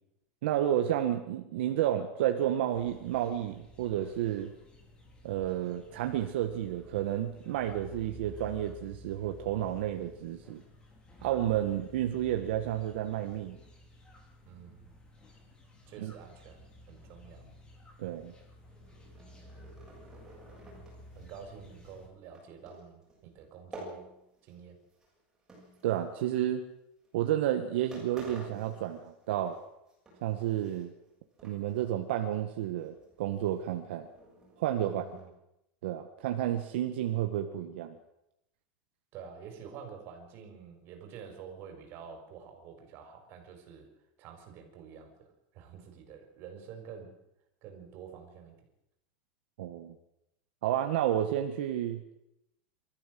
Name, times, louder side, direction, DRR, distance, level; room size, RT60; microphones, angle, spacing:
voice 1, 0.4-4.5 5.2-10.6 11.2-13.6 16.0-16.1 18.0-18.3 25.8-26.7 27.1-29.6 30.2-30.9 31.4-34.1 34.6-35.0 35.8-38.0 49.6-49.9 50.6-52.0, right 11 dB, 75° right, 5 dB, 1.7 m, -31 dB
sound 1, 2.7-22.1, equal, 15° left, 3.5 m, -53 dB
voice 2, 14.5-14.9 15.9-17.4 20.8-20.9 21.1-24.1 24.4-24.8 34.8-35.3 39.1-43.9 44.2-47.1 47.6-48.5, right 7 dB, 40° right, 4 dB, 5.0 m, -48 dB
sound 2, 18.5-24.6 24.9-26.4 27.0-27.2 27.6-27.7 27.9-29.6 29.9-31.1 31.4-32.0 32.3-32.4 32.8-35.2, right 2 dB, 10° right, 7.1 m, -52 dB
24.5 x 14.0 x 7.8 m, 0.85 s
supercardioid pair, 165°, 6 cm